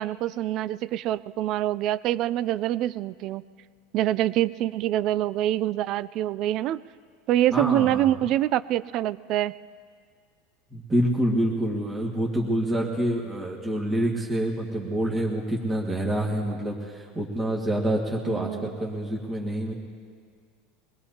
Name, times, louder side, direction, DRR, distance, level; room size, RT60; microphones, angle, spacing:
voice 1, 0.0-3.4 3.9-6.8 7.3-9.5 18.3-18.7, right 13 dB, 45° right, 18 dB, 0.3 m, -25 dB
voice 2, 7.5-8.1 10.7-19.7, right 1 dB, 15° right, -3 dB, 1.8 m, -27 dB
24.0 x 19.5 x 2.8 m, 2.1 s
supercardioid pair, 140°, 0 cm